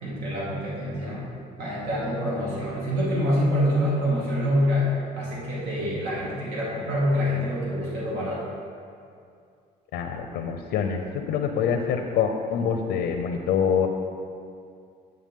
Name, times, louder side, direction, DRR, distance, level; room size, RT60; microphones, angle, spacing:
voice 1, 0.0-1.3 1.6-8.5, equal, 80° right, -6 dB, 2.2 m, -26 dB
voice 2, 9.9-11.0 11.3-13.9, left 7 dB, 80° left, 4 dB, 0.7 m, -25 dB
9.0 x 7.9 x 3.6 m, 2.3 s
cardioid pair, 110°, 17 cm